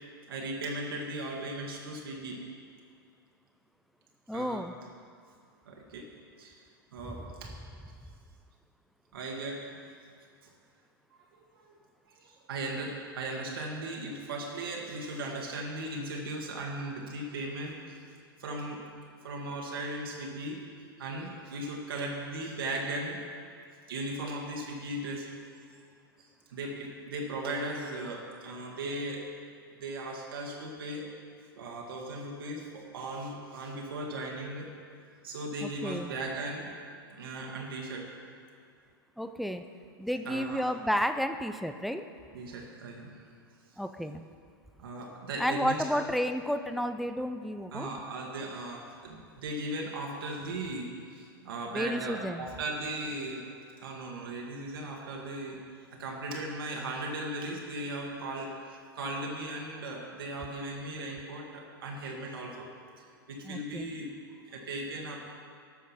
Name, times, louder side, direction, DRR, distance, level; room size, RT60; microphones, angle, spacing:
voice 1, 0.3-2.4 4.3-4.6 5.7-6.1 6.4-6.6 6.9-7.5 9.1-9.6 10.4-10.5 11.2-11.3 11.5-11.8 12.1-18.0 18.4-18.8 19.2-20.6 21.0-23.2 23.9-25.3 25.6-25.8 26.2-29.3 29.8-31.1 31.6-34.7 35.2-36.7 37.1-38.1 40.3-40.7 42.3-43.1 44.8-46.0 47.7-53.4 53.8-62.7 63.0-64.1 64.4-65.2, right 2 dB, 70° right, -1 dB, 1.7 m, -37 dB
voice 2, 4.3-4.8 7.0-7.2 35.6-36.1 39.2-39.6 40.0-42.1 43.8-44.3 45.4-47.9 51.7-52.5 63.4-63.9, equal, ahead, 9 dB, 0.4 m, -32 dB
12.0 x 6.4 x 5.8 m, 2.2 s
hypercardioid pair, 105°, 13 cm